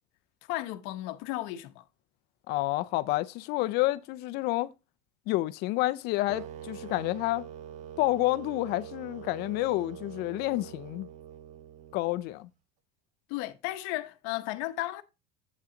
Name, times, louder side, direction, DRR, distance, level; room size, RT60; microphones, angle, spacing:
voice 1, 0.5-1.9 13.3-15.0, left 16 dB, 70° left, 0.9 m, -34 dB
voice 2, 2.5-4.7 5.3-7.5 8.0-11.1 11.9-12.5, left 18 dB, 55° left, 0.6 m, -29 dB
sound 1, 6.3-12.4, right 9 dB, 35° right, 0.6 m, -44 dB
8.4 x 7.2 x 3.8 m
cardioid pair, 170°, 21 cm